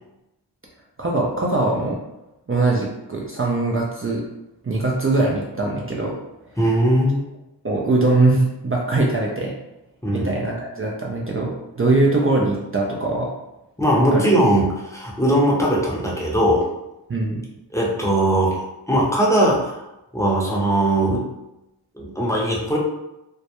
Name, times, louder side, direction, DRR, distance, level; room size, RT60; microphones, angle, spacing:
voice 1, 1.0-2.0 2.5-4.2 4.6-6.1 7.6-9.5 10.1-13.3 14.1-14.3 17.1-17.4, right 2 dB, 30° right, -3 dB, 0.4 m, -21 dB
voice 2, 6.6-7.2 10.0-10.3 13.8-16.7 17.7-19.8 20.1-21.3 22.0-22.8, right 1 dB, 5° left, -4 dB, 0.6 m, -19 dB
2.2 x 2.1 x 2.8 m, 0.91 s
wide cardioid pair, 45°, 44 cm